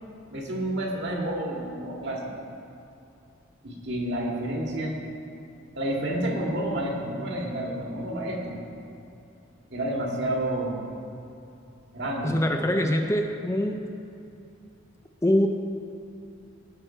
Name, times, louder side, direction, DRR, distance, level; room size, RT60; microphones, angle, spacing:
voice 1, 0.3-2.3 3.6-4.9 5.8-8.6 9.7-10.8 11.9-12.4, right 1 dB, 60° right, -1 dB, 1.9 m, -29 dB
voice 2, 12.2-13.8 15.2-15.5, left 1 dB, 15° left, 4 dB, 0.5 m, -23 dB
18.5 x 6.3 x 4.5 m, 2.7 s
head